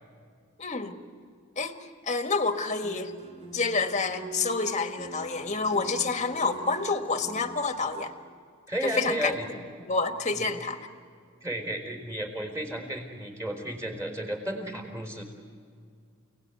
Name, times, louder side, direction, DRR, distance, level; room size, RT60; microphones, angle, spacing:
voice 1, 0.6-1.0 1.6-1.8 2.1-3.1 3.5-8.1 8.8-9.3 9.8-10.8, left 4 dB, 35° left, 7 dB, 1.6 m, -28 dB
sound 1, 2.8-7.8, right 3 dB, 35° right, 3.5 m, -43 dB
voice 2, 8.7-9.5 10.3-10.5 11.4-15.2, right 1 dB, 15° right, 3 dB, 4.0 m, -33 dB
29.5 x 18.5 x 9.6 m, 2.3 s
head